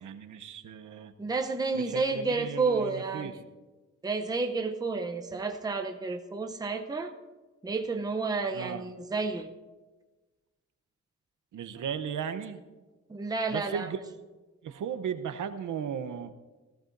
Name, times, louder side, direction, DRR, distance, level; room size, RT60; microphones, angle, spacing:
voice 1, 0.0-1.1 1.7-3.3 8.5-8.8 11.5-12.6 13.5-14.0 14.6-16.3, right 8 dB, 80° right, 9 dB, 0.8 m, -36 dB
voice 2, 1.2-3.4 4.0-7.1 7.6-9.5 13.1-13.9, right 4 dB, 15° right, 4 dB, 0.6 m, -30 dB
18.0 x 15.0 x 2.6 m, 1.2 s
wide cardioid pair, 165°, 30 cm